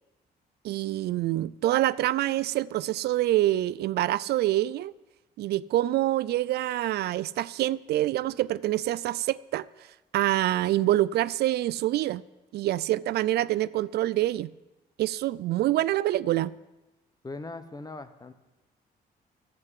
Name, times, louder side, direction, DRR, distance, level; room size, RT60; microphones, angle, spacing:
voice 1, 0.6-4.9 5.4-9.7 10.1-12.2 12.5-14.5 15.0-16.5, right 14 dB, 75° right, 0.4 m, -26 dB
voice 2, 17.2-18.3, left 3 dB, 25° left, 1.1 m, -39 dB
12.0 x 7.8 x 9.9 m
cardioid pair, 90°, 17 cm